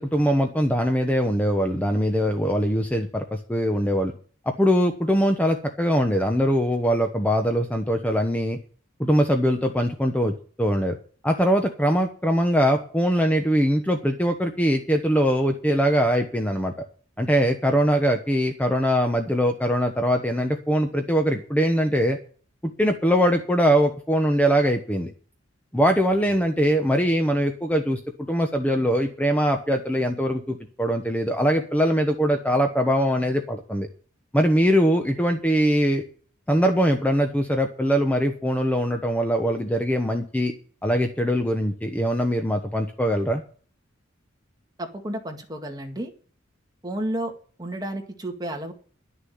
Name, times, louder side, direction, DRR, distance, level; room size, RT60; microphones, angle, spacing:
voice 1, 0.0-4.1 4.6-8.6 9.0-11.0 11.2-16.7 17.2-22.2 22.8-25.1 25.7-33.9 34.3-36.0 36.5-40.5 40.8-43.4, equal, 10° left, 5 dB, 1.0 m, -22 dB
voice 2, 44.8-46.1 46.8-47.3 47.6-48.7, right 1 dB, 20° right, 3 dB, 2.0 m, -31 dB
11.5 x 6.9 x 9.4 m, 0.43 s
head